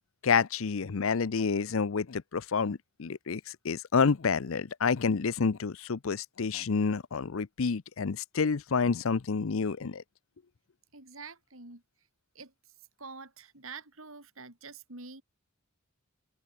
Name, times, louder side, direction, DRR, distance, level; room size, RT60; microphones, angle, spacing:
voice 1, 0.2-10.0, left 5 dB, 75° left, 0.6 m, -29 dB
voice 2, 10.9-11.8 12.4-12.5 13.0-15.2, right 4 dB, 80° right, 5.5 m, -46 dB
open air
head